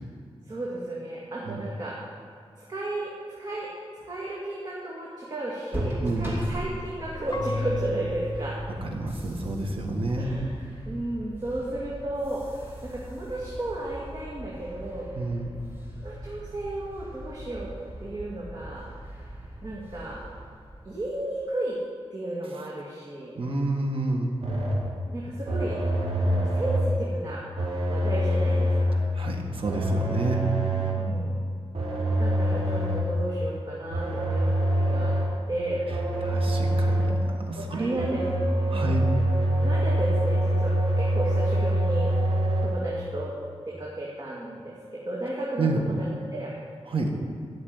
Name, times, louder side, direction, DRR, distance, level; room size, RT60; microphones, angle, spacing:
voice 1, 0.5-1.9 2.7-3.1 3.4-3.7 4.0-8.6 10.2-15.1 16.0-17.7 18.0-18.8 19.6-20.2 20.9-21.8 22.1-23.3 25.1-25.8 26.2-27.4 27.9-29.0 30.9-31.6 32.2-35.1 35.5-35.8 36.1-36.2 37.6-38.2 38.6-39.0 39.6-42.1 42.6-43.3 43.7-46.5, right 1 dB, 40° right, -5 dB, 2.2 m, -33 dB
sound 1, 5.7-21.4, right 1 dB, 20° right, 2.9 m, -39 dB
Marimba xylophone / Wood, 7.3-10.2, left 2 dB, 45° left, 0.6 m, -35 dB
voice 2, 8.8-10.3 15.2-15.5 23.4-24.4 29.1-30.4 36.2-38.1 38.7-39.1 45.6-45.8 46.9-47.1, right 2 dB, 65° right, 1 dB, 1.9 m, -29 dB
sound 2, 24.4-24.9 25.5-27.0 27.6-29.0 29.6-31.1 31.7-33.2 33.9-35.4 35.9-37.3 38.0-42.7, right 1 dB, 80° right, 3.3 m, -25 dB
13.0 x 6.6 x 9.6 m, 2.2 s
wide cardioid pair, 140°, 10 cm